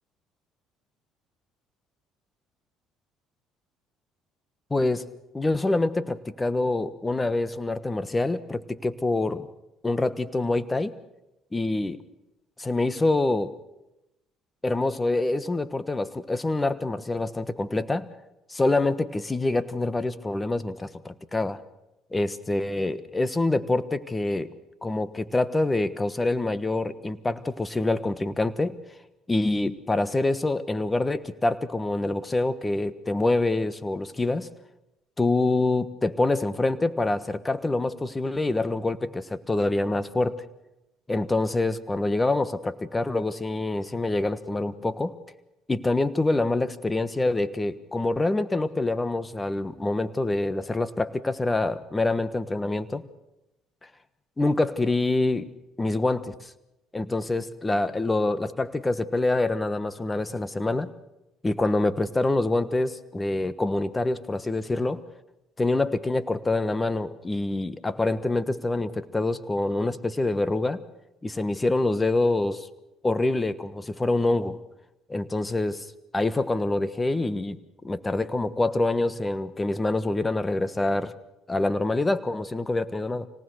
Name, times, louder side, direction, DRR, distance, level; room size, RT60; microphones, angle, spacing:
voice 1, 4.7-5.1 5.3-9.5 9.8-11.0 11.5-12.0 12.6-13.5 14.6-18.1 18.5-21.6 22.1-24.5 24.8-28.8 29.3-34.5 35.2-40.4 41.1-45.2 45.7-53.0 54.4-55.5 55.8-56.5 56.9-60.9 61.4-65.0 65.6-70.8 71.2-72.7 73.0-74.6 75.1-75.9 76.1-77.6 77.8-81.1 81.5-83.3, left 2 dB, 20° left, 14 dB, 1.3 m, -26 dB
25.5 x 18.5 x 6.4 m, 0.94 s
supercardioid pair, 70°, 0 cm